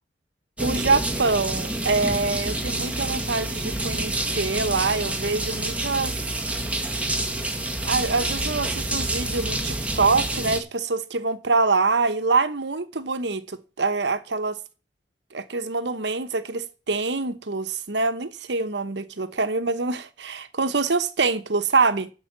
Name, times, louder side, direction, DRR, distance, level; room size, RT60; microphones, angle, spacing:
sound 1, 0.6-10.6, right 1 dB, 10° right, 1.6 m, -28 dB
voice 1, 0.6-6.1 7.8-14.6 15.3-22.1, right 4 dB, 70° right, 1.1 m, -25 dB
12.0 x 5.0 x 7.5 m
head